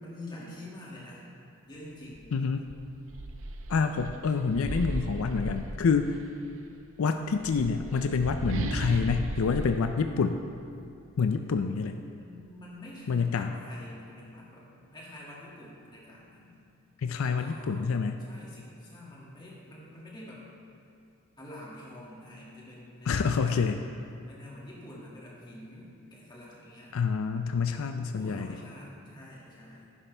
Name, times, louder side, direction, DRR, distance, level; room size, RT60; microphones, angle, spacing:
voice 1, 0.0-1.3 1.6-2.3 12.1-16.5 17.3-17.9 18.2-20.4 21.4-23.8 24.3-26.9 28.1-29.9, left 1 dB, 20° left, -6 dB, 2.1 m, -47 dB
sound 1, 2.1-2.3 2.7-6.3 7.2-10.9, right 2 dB, 70° right, 0.7 m, -36 dB
voice 2, 2.3-2.7 3.7-6.2 7.0-10.4 11.2-12.0 13.1-13.5 17.0-18.2 23.1-23.8 26.9-28.6, left 5 dB, 80° left, 7 dB, 0.4 m, -27 dB
11.0 x 11.0 x 3.4 m, 2.6 s
head